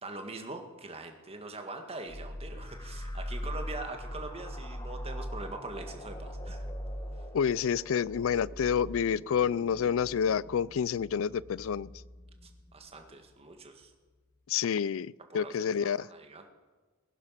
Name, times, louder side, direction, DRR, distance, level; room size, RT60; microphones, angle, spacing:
voice 1, 0.0-6.6 12.7-13.9 15.3-16.5, right 2 dB, 30° right, 5 dB, 1.8 m, -43 dB
sound 1, 2.1-13.4, equal, 20° left, 1.2 m, -41 dB
voice 2, 7.3-11.9 14.5-16.1, left 7 dB, 65° left, 22 dB, 0.4 m, -29 dB
20.0 x 11.0 x 5.7 m, 1.3 s
head